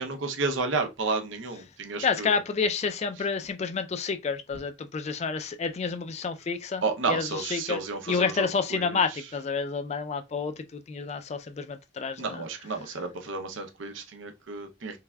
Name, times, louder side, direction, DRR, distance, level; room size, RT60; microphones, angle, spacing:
voice 1, 0.0-2.4 6.8-9.0 12.2-15.0, right 3 dB, 75° right, 0.7 m, -31 dB
voice 2, 2.0-12.4, left 5 dB, 35° left, 0.3 m, -29 dB
3.4 x 3.3 x 2.2 m
head